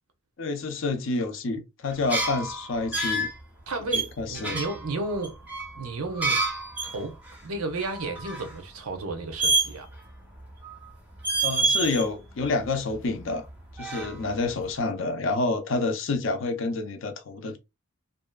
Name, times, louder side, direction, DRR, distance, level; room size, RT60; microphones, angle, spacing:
voice 1, 0.4-3.3 3.9-4.6 11.4-13.5 13.7-17.6, left 3 dB, 60° left, 0.5 m, -28 dB
sound 1, 1.9-3.4 3.9-7.0 7.3-7.4 7.7-8.5 9.4-10.1 10.4-10.9 11.2-12.1 12.4-13.5 13.7-14.5, right 3 dB, 5° right, 0.5 m, -28 dB
voice 2, 3.7-5.3 5.8-6.4 6.8-7.2 7.4-9.9, right 3 dB, 80° right, 0.7 m, -32 dB
2.6 x 2.3 x 2.2 m
head